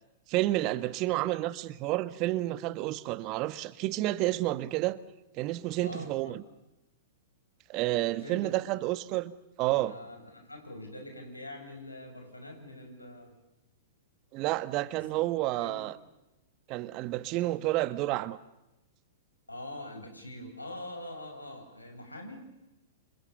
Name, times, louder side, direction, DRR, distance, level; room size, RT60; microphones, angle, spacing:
voice 1, 0.3-5.0 5.3-6.4 7.7-9.3 9.6-9.9 14.3-15.9 16.7-18.4, right 17 dB, 35° right, 1.3 m, -30 dB
voice 2, 5.8-6.4 8.2-8.8 9.7-13.4 15.6-15.9 19.5-22.4, left 1 dB, 90° left, 7.2 m, -44 dB
29.5 x 27.0 x 7.1 m
figure-of-eight pair, 105°, 0 cm